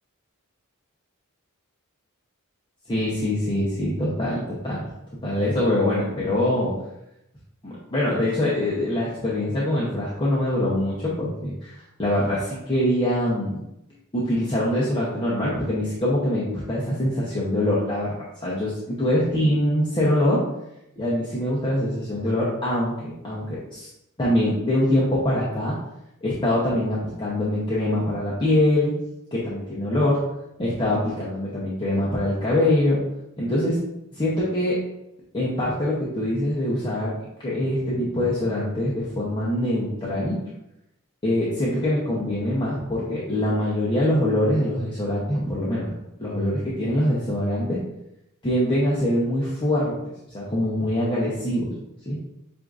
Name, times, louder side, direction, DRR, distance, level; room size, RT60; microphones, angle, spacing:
voice 1, 2.9-4.9 5.2-6.7 7.6-13.6 14.1-18.1 18.4-20.4 21.0-23.9 24.2-25.7 26.2-28.9 29.3-30.2 30.6-33.0 33.4-33.8 34.1-34.7 35.3-37.1 37.4-40.4 41.2-45.9 46.2-47.8 48.4-50.0 50.3-51.7 52.1-52.2, left 1 dB, 20° left, -7 dB, 0.8 m, -24 dB
7.8 x 2.6 x 2.5 m, 0.87 s
head